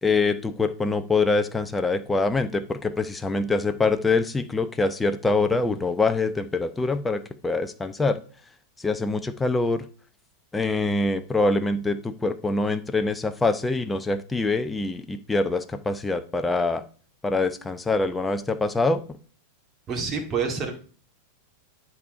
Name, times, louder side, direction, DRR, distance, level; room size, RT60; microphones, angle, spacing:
voice 1, 0.0-8.2 8.8-9.9 10.5-16.8 17.2-19.0, left 3 dB, 10° left, 10 dB, 0.7 m, -24 dB
voice 2, 19.9-20.7, right 5 dB, 30° right, 2 dB, 2.2 m, -27 dB
11.0 x 4.3 x 5.0 m, 0.41 s
figure-of-eight pair, 90°, 0 cm